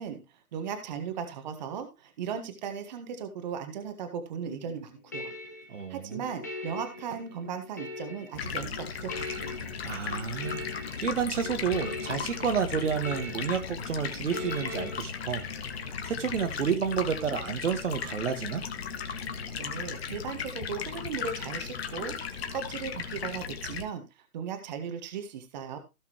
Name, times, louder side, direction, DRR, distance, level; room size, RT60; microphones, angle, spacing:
voice 1, 0.0-5.3 5.9-9.5 19.5-25.8, right 7 dB, 30° right, 1.5 m, -37 dB
sound 1, 4.5-15.0, left 2 dB, 10° left, 0.5 m, -41 dB
voice 2, 5.7-6.2 9.8-10.6 11.0-15.4 16.0-18.6, right 7 dB, 50° right, 1.7 m, -30 dB
Stream, 8.3-23.8, left 6 dB, 40° left, 1.8 m, -36 dB
17.0 x 5.9 x 3.0 m
figure-of-eight pair, 150°, 45 cm